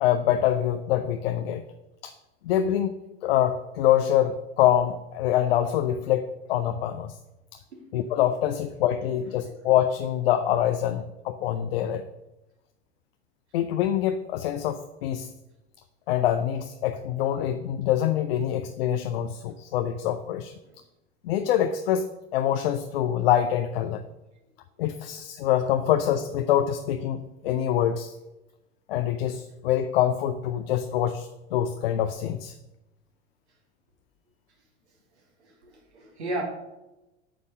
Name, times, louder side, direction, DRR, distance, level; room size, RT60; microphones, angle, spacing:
voice 1, 0.0-1.6 2.0-2.1 2.4-3.0 3.2-7.2 7.5-7.6 7.9-12.1 13.5-15.3 16.1-20.5 21.2-24.0 24.8-28.1 28.9-32.5, left 11 dB, 55° left, 8 dB, 0.6 m, -25 dB
voice 2, 35.4-36.4, right 1 dB, 65° right, 1 dB, 2.5 m, -35 dB
8.7 x 5.3 x 6.3 m, 0.98 s
figure-of-eight pair, 80°, 36 cm